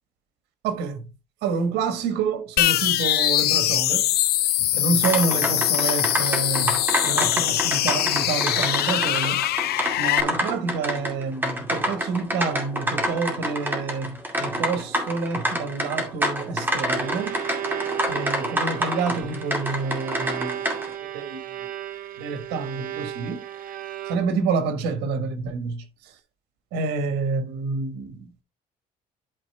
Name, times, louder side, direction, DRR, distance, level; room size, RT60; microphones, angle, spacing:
voice 1, 0.6-1.1 1.4-4.1 4.6-9.5 10.0-17.4 18.1-20.6 21.1-21.7 22.2-23.4 24.0-26.2 26.7-28.4, right 4 dB, 85° right, 1.4 m, -28 dB
sound 1, 2.6-10.2, left 14 dB, 70° left, 0.6 m, -22 dB
sound 2, 5.0-20.9, equal, 10° right, 2.2 m, -28 dB
Bowed string instrument, 16.8-24.6, right 12 dB, 55° right, 0.9 m, -34 dB
12.0 x 4.2 x 3.3 m
cardioid pair, 110°, 17 cm